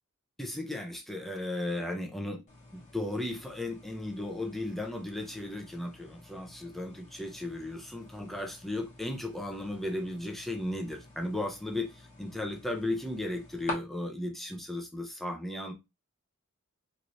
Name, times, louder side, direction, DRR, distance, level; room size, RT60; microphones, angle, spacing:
voice 1, 0.4-2.4 2.7-15.7, left 1 dB, ahead, 0.6 m, -35 dB
sound 1, 2.5-13.7, left 2 dB, 35° left, 1.1 m, -48 dB
3.2 x 2.9 x 2.6 m
head